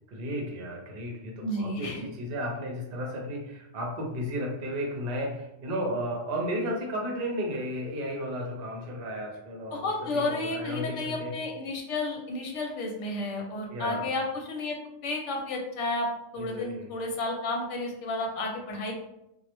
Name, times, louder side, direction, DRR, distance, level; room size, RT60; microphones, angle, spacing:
voice 1, 0.1-11.3 13.7-14.1 16.3-16.9, equal, 60° right, 0 dB, 0.8 m, -34 dB
voice 2, 1.4-2.1 9.7-14.8 15.0-16.1 16.3-18.9, left 2 dB, 85° left, 1 dB, 0.9 m, -32 dB
2.3 x 2.0 x 2.9 m, 0.85 s
omnidirectional pair, 1.2 m